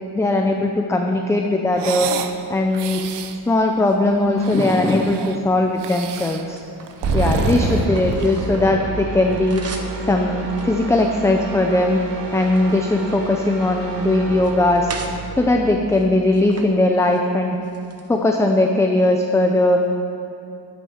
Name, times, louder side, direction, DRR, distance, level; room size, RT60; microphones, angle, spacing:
voice 1, 0.1-2.1 2.5-3.0 3.5-6.6 7.1-9.6 10.0-12.0 12.3-14.9 15.4-17.6 18.1-19.8, left 2 dB, 5° left, 3 dB, 0.4 m, -19 dB
sound 1, 1.7-2.4 2.7-3.4 4.2-5.4 5.8-6.5 6.9-8.4, right 8 dB, 85° right, 0.8 m, -31 dB
sound 2, 3.7-4.7 5.3-8.8 9.1-10.0 10.5-11.8 12.2-13.9 14.3-15.2 15.8-16.7 17.0-17.2 17.6-18.6, right 4 dB, 35° right, 1.0 m, -40 dB
sound 3, 7.0-16.4, right 2 dB, 55° right, 1.9 m, -28 dB
9.3 x 9.3 x 7.0 m, 2.7 s
wide cardioid pair, 175°, 41 cm